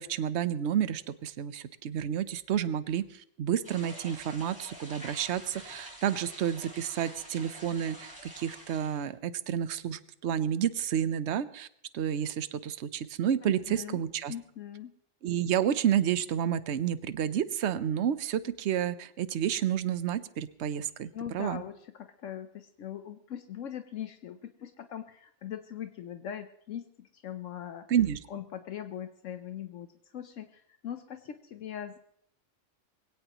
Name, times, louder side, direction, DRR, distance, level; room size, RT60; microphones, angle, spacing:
voice 1, 0.0-11.7 11.9-14.3 15.2-21.6 27.9-28.2, right 9 dB, 65° right, 14 dB, 1.0 m, -30 dB
sound 1, 3.6-9.0, equal, 5° right, 4.3 m, -47 dB
voice 2, 13.4-14.0 14.3-14.9 21.1-27.9 28.3-29.9 30.1-32.0, left 10 dB, 80° left, 9 dB, 1.1 m, -41 dB
22.0 x 17.0 x 3.0 m, 0.68 s
omnidirectional pair, 1.3 m